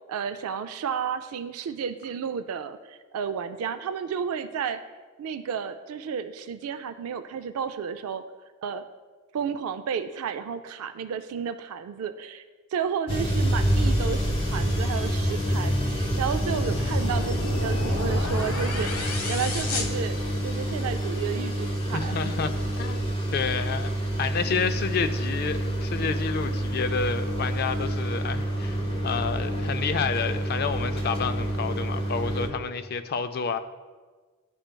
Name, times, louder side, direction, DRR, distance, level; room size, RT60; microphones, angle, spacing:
voice 1, 0.1-4.8 5.2-8.3 8.6-8.8 9.3-12.4 12.7-20.2 20.4-22.2, right 7 dB, 90° right, 0.3 m, -32 dB
sound 1, 13.1-32.5, right 1 dB, 25° left, 0.8 m, -27 dB
sound 2, 16.2-20.8, left 3 dB, 75° left, 0.9 m, -34 dB
voice 2, 21.9-33.6, left 5 dB, 45° left, 0.3 m, -30 dB
11.5 x 4.4 x 2.2 m
head